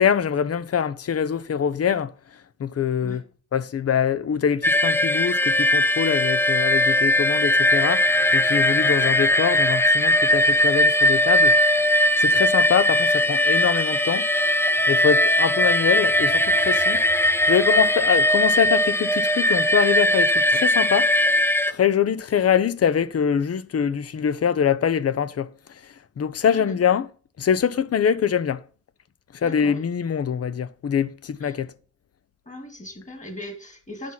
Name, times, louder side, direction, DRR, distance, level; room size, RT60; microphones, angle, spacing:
voice 1, 0.0-2.1 2.6-3.2 3.5-11.8 12.2-14.3 14.9-17.0 17.5-21.4 21.7-27.1 27.4-28.6 29.3-31.7, left 8 dB, 55° left, 0.8 m, -24 dB
sound 1, 4.6-21.7, left 1 dB, 10° left, 0.7 m, -19 dB
voice 2, 29.4-29.8 31.4-31.6 32.5-34.1, left 1 dB, 25° left, 3.0 m, -39 dB
10.0 x 6.0 x 5.6 m
wide cardioid pair, 115°, 29 cm